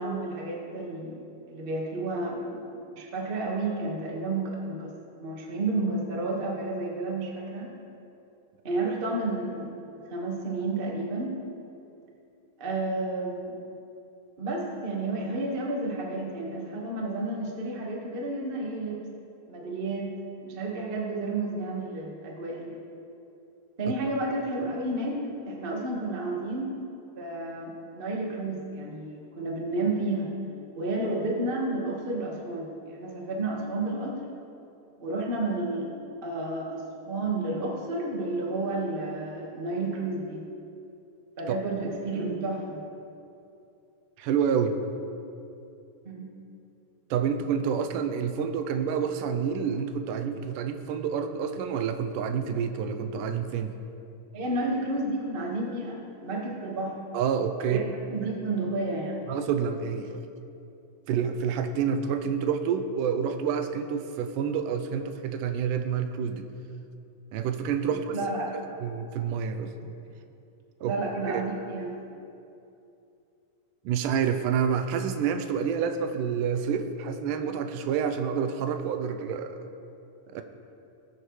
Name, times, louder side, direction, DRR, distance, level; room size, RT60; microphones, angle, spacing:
voice 1, 0.0-2.6 2.9-4.9 5.2-7.7 8.6-9.7 10.1-11.4 12.6-13.6 14.4-19.0 19.5-20.1 20.4-22.8 23.8-26.8 27.2-30.3 30.8-34.2 35.0-35.9 36.2-40.4 41.4-42.8 46.0-46.3 54.3-57.0 57.6-59.2 68.1-68.5 70.8-72.0, right 2 dB, 45° right, -2 dB, 0.6 m, -31 dB
voice 2, 44.2-44.8 47.1-53.8 57.1-57.8 59.3-60.2 61.1-66.5 67.3-68.2 68.8-69.7 70.8-70.9 71.3-71.4 73.9-79.6 80.3-80.4, right 7 dB, 85° right, 8 dB, 2.2 m, -28 dB
20.0 x 7.7 x 3.2 m, 2.7 s
omnidirectional pair, 3.7 m